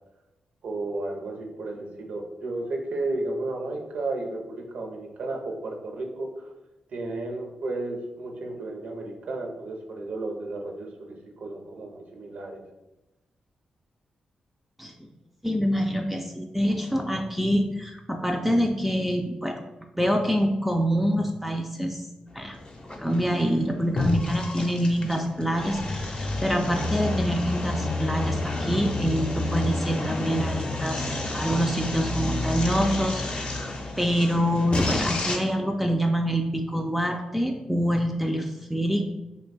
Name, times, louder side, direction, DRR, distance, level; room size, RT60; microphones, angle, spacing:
voice 1, 0.6-6.5 6.9-12.6, right 2 dB, 75° right, 2 dB, 0.6 m, -33 dB
voice 2, 14.8-15.1 15.4-22.1 22.3-22.6 22.9-39.1, equal, 5° right, 3 dB, 0.3 m, -26 dB
sound 1, 22.3-35.4, left 2 dB, 50° left, 0.6 m, -30 dB
2.7 x 2.2 x 4.0 m, 0.99 s
cardioid pair, 65°, 2 cm